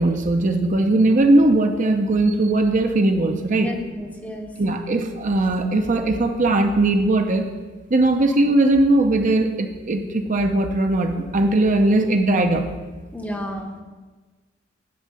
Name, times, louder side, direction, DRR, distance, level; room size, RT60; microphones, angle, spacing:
voice 1, 0.0-3.7 4.6-7.5 7.9-12.7, right 2 dB, 40° right, 5 dB, 0.6 m, -19 dB
voice 2, 3.5-4.5 13.1-13.8, left 1 dB, 5° left, 3 dB, 0.7 m, -32 dB
11.0 x 3.7 x 6.8 m, 1.3 s
head